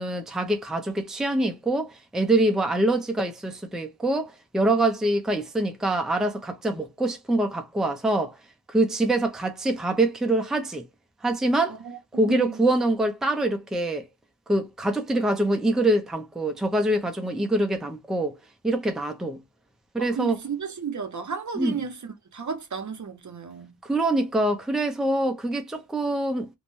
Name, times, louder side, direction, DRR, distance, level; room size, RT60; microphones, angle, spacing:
voice 1, 0.0-8.4 8.7-10.8 11.2-11.8 12.1-14.1 14.5-18.4 18.6-19.4 19.9-20.4 21.6-21.7 23.8-26.5, right 1 dB, ahead, 0.5 m, -25 dB
voice 2, 11.7-12.0 12.2-12.6 20.0-23.8, right 6 dB, 50° right, 0.7 m, -34 dB
2.6 x 2.1 x 3.1 m
wide cardioid pair, 85°, 38 cm